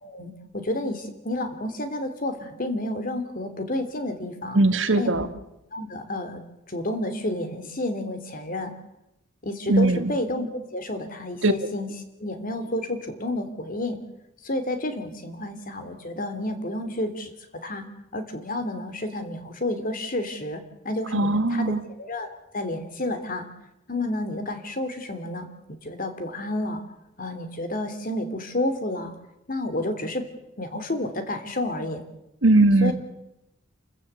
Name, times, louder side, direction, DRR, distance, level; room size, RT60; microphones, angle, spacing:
voice 1, 0.0-4.6 5.0-5.2 5.7-6.4 6.7-8.7 9.4-11.9 12.2-14.0 14.4-17.3 17.6-17.9 18.1-23.5 23.9-25.5 25.8-26.8 27.2-29.1 29.5-30.2 30.6-32.0 32.8-32.9, left 1 dB, 45° left, 8 dB, 3.1 m, -30 dB
voice 2, 4.5-5.3 9.7-10.1 11.4-11.5 21.1-21.8 32.4-32.9, right 2 dB, 70° right, 10 dB, 1.9 m, -19 dB
29.0 x 14.5 x 8.2 m, 0.89 s
head